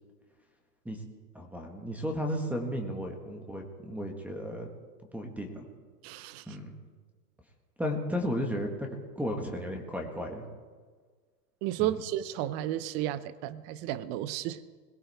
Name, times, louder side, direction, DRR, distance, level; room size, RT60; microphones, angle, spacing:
voice 1, 1.3-4.7 5.1-5.7 6.5-6.7 7.8-10.4 11.8-11.9, equal, 5° right, 2 dB, 1.7 m, -34 dB
voice 2, 6.0-6.4 11.6-14.6, right 13 dB, 35° right, 15 dB, 0.8 m, -33 dB
21.5 x 17.0 x 3.6 m, 1.5 s
hypercardioid pair, 130°, 49 cm